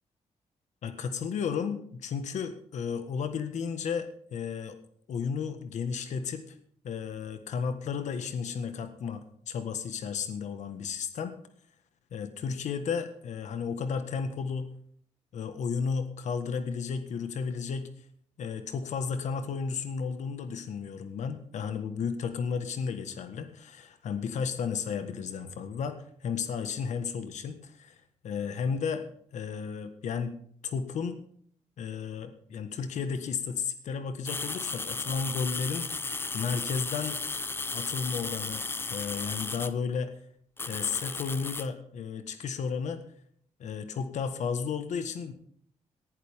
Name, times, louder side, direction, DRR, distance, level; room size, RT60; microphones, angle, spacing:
voice 1, 0.8-4.8 5.1-6.6 6.8-11.3 12.1-14.7 15.3-17.9 18.4-28.0 28.2-29.0 29.3-30.3 30.6-31.2 31.8-37.2 37.7-38.6 38.9-40.1 40.7-43.0 43.6-45.3, left 6 dB, 75° left, 9 dB, 1.5 m, -33 dB
sound 1, 34.3-39.7 40.6-41.7, left 3 dB, 20° left, 0.7 m, -35 dB
19.0 x 11.0 x 3.6 m, 0.62 s
wide cardioid pair, 160°, 12 cm